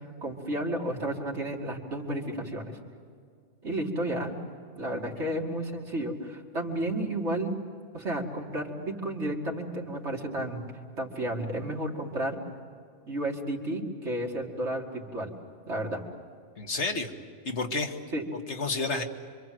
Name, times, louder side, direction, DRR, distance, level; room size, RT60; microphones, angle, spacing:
voice 1, 0.2-2.8 3.6-4.3 4.8-7.5 7.9-10.6 11.0-12.4 13.1-15.3 15.7-16.0 18.1-18.2, right 1 dB, 70° right, 0 dB, 3.0 m, -32 dB
voice 2, 4.9-5.3 16.6-17.1 17.5-18.0 18.5-19.0, left 3 dB, 70° left, 4 dB, 2.0 m, -31 dB
26.5 x 25.0 x 7.8 m, 2.2 s
omnidirectional pair, 1.2 m